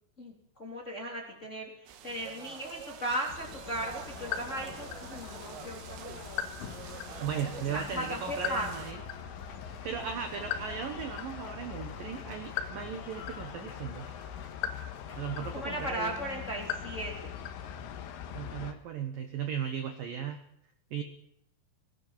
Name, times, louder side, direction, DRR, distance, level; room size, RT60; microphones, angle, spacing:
voice 1, 0.6-6.5 7.7-8.7 15.5-17.3, right 1 dB, 15° left, -1 dB, 3.0 m, -37 dB
sound 1, 1.9-8.9, right 9 dB, 85° right, 4.2 m, -47 dB
sound 2, 3.3-18.7, left 9 dB, 80° left, 4.1 m, -40 dB
Applause, 4.0-17.5, left 3 dB, 35° left, 3.3 m, -51 dB
voice 2, 7.2-9.0 9.7-14.1 15.2-16.1 18.3-20.4 20.9-21.0, right 7 dB, 65° right, 6 dB, 2.3 m, -37 dB
19.5 x 18.0 x 7.5 m, 0.76 s
omnidirectional pair, 5.7 m